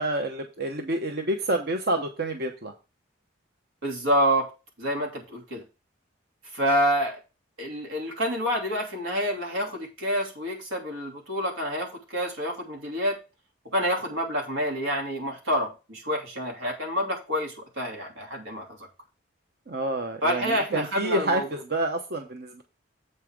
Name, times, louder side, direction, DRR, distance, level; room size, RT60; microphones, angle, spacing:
voice 1, 0.0-2.7 19.7-22.6, right 1 dB, 50° right, 4 dB, 0.8 m, -28 dB
voice 2, 3.8-4.5 4.8-5.6 6.5-7.2 7.6-13.2 13.7-18.8 20.2-21.5, equal, 90° right, 1 dB, 2.8 m, -28 dB
7.9 x 5.5 x 4.8 m, 0.29 s
head